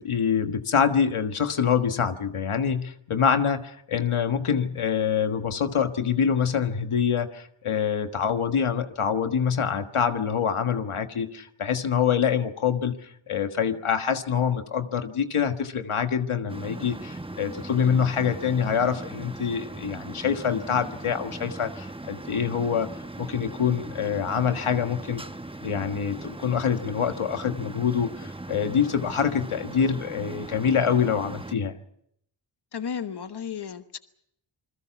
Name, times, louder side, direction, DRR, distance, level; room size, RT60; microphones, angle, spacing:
voice 1, 0.0-22.9 23.2-25.2 25.6-31.7, left 7 dB, 90° left, 7 dB, 1.5 m, -25 dB
sound 1, 16.5-31.5, right 2 dB, 10° right, 0.9 m, -39 dB
voice 2, 32.7-34.0, left 7 dB, 55° left, 9 dB, 1.2 m, -33 dB
27.5 x 21.5 x 5.9 m, 0.72 s
wide cardioid pair, 70°, 48 cm